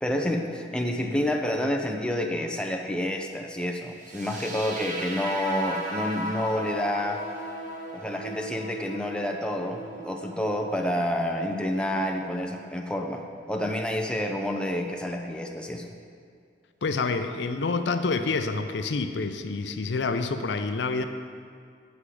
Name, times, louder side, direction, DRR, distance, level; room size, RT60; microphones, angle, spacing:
voice 1, 0.0-7.2 7.9-15.8, left 1 dB, 5° left, 2 dB, 0.6 m, -29 dB
sound 1, 4.0-12.0, right 1 dB, 45° right, 1.2 m, -37 dB
voice 2, 16.8-21.0, left 4 dB, 75° left, 8 dB, 0.5 m, -28 dB
8.5 x 7.3 x 4.9 m, 2.2 s
head